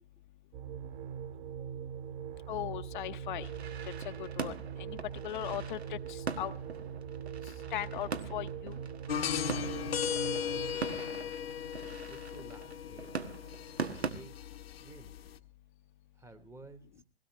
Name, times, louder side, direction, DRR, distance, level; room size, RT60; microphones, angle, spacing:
sound 1, 0.5-10.7, right 8 dB, 50° right, 2.3 m, -42 dB
voice 1, 2.5-3.5 4.0-5.0 5.2-6.5 7.4-8.8, left 13 dB, 50° left, 10 dB, 0.8 m, -39 dB
sound 2, 3.4-14.1, right 5 dB, 90° right, 1.6 m, -42 dB
sound 3, 9.1-15.4, left 8 dB, 70° left, 1.2 m, -37 dB
voice 2, 9.5-10.1 10.3-11.4 12.1-13.1 14.0-14.4 14.8-15.1 16.1-17.0, right 3 dB, 10° right, 9 dB, 1.1 m, -53 dB
21.0 x 17.0 x 3.1 m, 0.34 s
hypercardioid pair, 125°, 31 cm